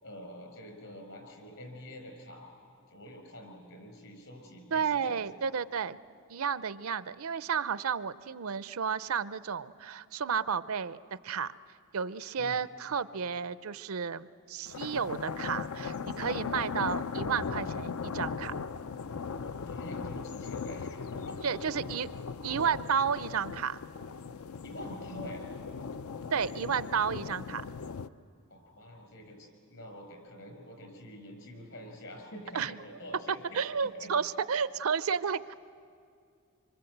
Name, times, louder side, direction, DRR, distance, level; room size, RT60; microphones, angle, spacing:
voice 1, 0.0-2.5 2.9-5.5 12.4-12.6 16.2-16.5 19.4-21.4 24.6-25.5 28.5-34.1, equal, 65° left, 4 dB, 5.8 m, -47 dB
voice 2, 4.7-6.0 6.3-11.0 11.2-11.5 11.9-18.5 21.4-22.1 22.4-23.8 26.3-27.6 32.5-32.8 33.5-35.5, right 6 dB, 80° right, 15 dB, 0.6 m, -32 dB
sound 1, 14.7-28.1, left 5 dB, 85° left, 0.5 m, -38 dB
26.5 x 25.0 x 8.0 m, 2.4 s
head